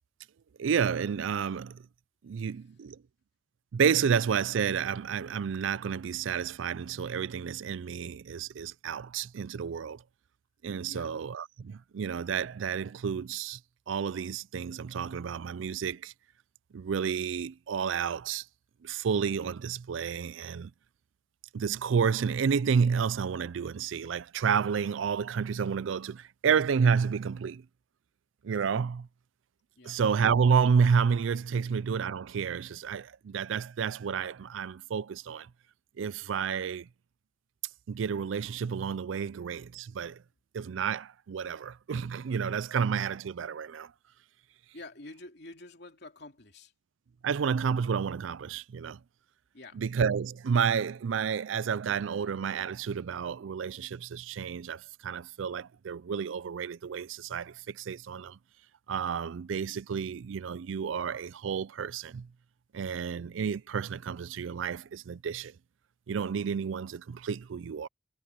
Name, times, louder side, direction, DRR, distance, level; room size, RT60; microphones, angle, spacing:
voice 1, 0.6-1.8 2.2-3.0 3.7-10.0 10.6-13.6 13.9-16.1 16.7-18.4 18.8-20.7 21.5-27.6 28.4-29.1 29.8-35.5 36.0-36.9 37.9-40.2 40.5-43.9 47.2-49.0 49.8-58.4 58.9-62.3 62.7-65.5 66.1-67.9, right 6 dB, 75° right, 0.4 m, -30 dB
voice 2, 44.7-46.7 49.5-49.8, left 2 dB, 60° left, 3.0 m, -48 dB
head